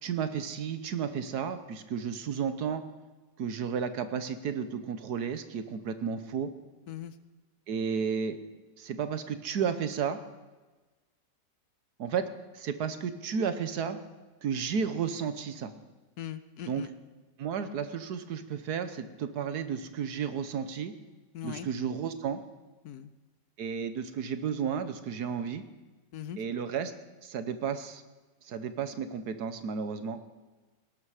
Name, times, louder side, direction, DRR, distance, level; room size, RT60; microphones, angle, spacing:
voice 1, 0.0-2.8 3.4-6.5 7.7-8.4 8.8-10.2 12.0-12.2 12.5-14.0 14.4-15.7 16.7-16.9 17.4-20.9 21.4-22.4 23.6-25.6 26.4-26.9 27.2-28.0 28.4-30.2, right 7 dB, 65° right, 10 dB, 1.4 m, -32 dB
voice 2, 16.2-16.9 21.3-21.7 22.8-23.1 26.1-26.4, left 10 dB, 70° left, 13 dB, 1.1 m, -40 dB
19.0 x 11.5 x 4.9 m, 1.2 s
omnidirectional pair, 1.9 m